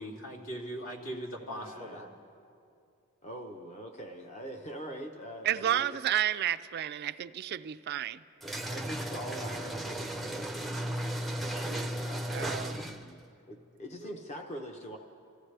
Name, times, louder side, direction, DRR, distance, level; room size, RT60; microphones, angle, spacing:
voice 1, 0.0-2.1 14.0-14.1, equal, 70° left, 2.6 m, -40 dB
voice 2, 1.5-2.1 3.2-5.9 8.7-15.0, equal, 30° left, 0.8 m, -44 dB
voice 3, 5.4-8.2 12.3-12.8, right 11 dB, 45° right, 0.3 m, -31 dB
sound 1, 8.4-13.2, right 1 dB, ahead, 0.5 m, -35 dB
27.5 x 14.5 x 3.3 m
head